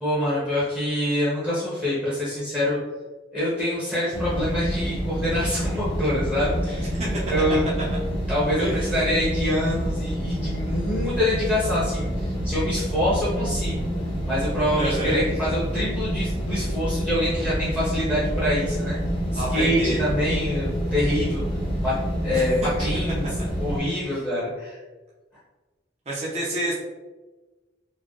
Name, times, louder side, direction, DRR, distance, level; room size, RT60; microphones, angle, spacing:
voice 1, 0.0-2.8 3.3-7.6 8.3-13.9 14.2-19.0 19.3-21.4 21.8-21.9 22.2-23.3 23.6-24.8, left 1 dB, 5° left, -9 dB, 1.1 m, -25 dB
sound 1, 4.1-23.8, equal, 25° left, 1.3 m, -27 dB
voice 2, 14.8-15.2 19.3-20.0 22.3-22.5 26.1-26.7, right 1 dB, 35° right, -6 dB, 0.8 m, -28 dB
4.3 x 2.4 x 3.2 m, 1.2 s
head